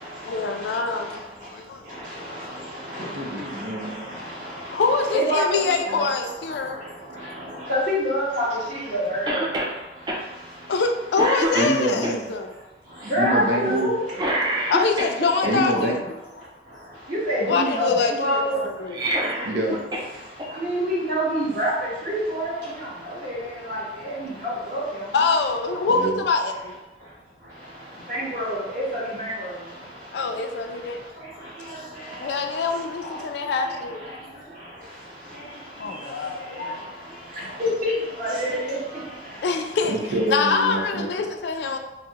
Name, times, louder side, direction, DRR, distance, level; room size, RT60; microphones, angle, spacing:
voice 1, 0.2-1.1 1.5-1.8 3.5-3.6 3.8-3.9 4.7-6.8 7.5-7.6 10.7-12.5 14.7-16.0 17.4-19.0 25.1-26.8 30.1-31.0 32.2-34.1 35.8-36.8 39.4-39.9 40.3-41.8, left 4 dB, 70° left, 5 dB, 0.3 m, -24 dB
voice 2, 3.1-3.9 11.5-12.3 13.2-13.9 15.4-16.0 19.4-19.8 25.9-26.2 39.9-41.1, right 1 dB, 85° right, -2 dB, 0.6 m, -26 dB
voice 3, 5.1-5.4 5.9-6.0 7.7-8.4 8.9-9.4 13.1-14.0 17.1-18.6 20.6-21.7 22.0-22.5 23.2-23.4 24.7-24.8 28.1-29.0 37.6-37.9 38.2-38.6, equal, 50° right, -8 dB, 1.3 m, -24 dB
Cough, 9.3-9.8 10.1-10.2 10.7-10.9 11.2-12.1 14.1-15.5 18.8-20.1 20.4-20.5 21.6-21.7, right 1 dB, 25° right, 0.4 m, -26 dB
2.7 x 2.0 x 3.4 m, 1.0 s
head